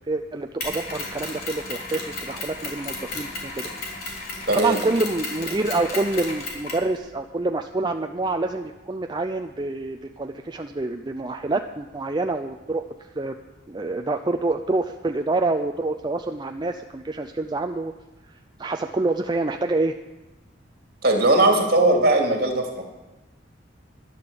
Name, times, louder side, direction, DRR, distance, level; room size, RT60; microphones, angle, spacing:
voice 1, 0.1-3.7 4.5-12.9 13.1-13.4 13.7-17.9 18.3-20.0, right 2 dB, 25° right, 5 dB, 0.5 m, -27 dB
Mechanisms, 0.6-6.9, left 3 dB, 50° left, 3.4 m, -34 dB
voice 2, 4.5-4.8 21.0-22.8, right 2 dB, 55° right, 2 dB, 2.6 m, -19 dB
12.0 x 11.0 x 7.0 m, 1.1 s
head